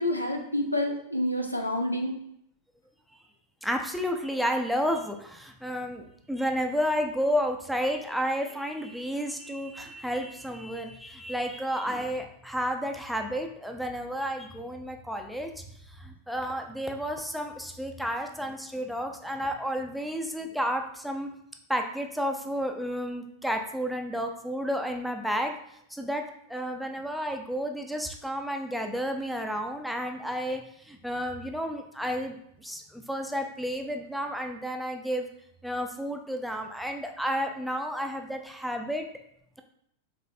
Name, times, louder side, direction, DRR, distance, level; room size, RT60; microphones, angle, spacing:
voice 1, 0.0-2.2, left 1 dB, 85° left, 4 dB, 0.5 m, -28 dB
voice 2, 3.6-21.3 21.7-25.6 25.9-26.2 26.5-35.3 35.6-39.1, equal, ahead, 3 dB, 0.4 m, -31 dB
5.0 x 3.3 x 2.6 m, 0.71 s
figure-of-eight pair, 90°, 0 cm